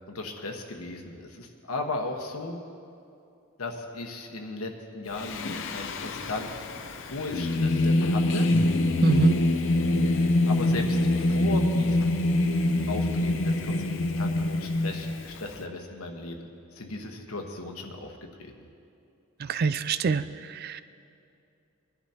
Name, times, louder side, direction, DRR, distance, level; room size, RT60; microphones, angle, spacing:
voice 1, 0.1-2.6 3.6-5.5 5.7-6.5 7.1-8.5 10.5-12.2 12.9-13.8 14.2-18.5, left 2 dB, 85° left, 3 dB, 1.3 m, -36 dB
Singing, 5.2-15.6, left 1 dB, 60° left, 0.7 m, -25 dB
voice 2, 9.0-9.4 19.5-20.2 20.5-20.8, right 4 dB, 45° right, 12 dB, 0.3 m, -24 dB
21.5 x 11.0 x 2.9 m, 2.6 s
head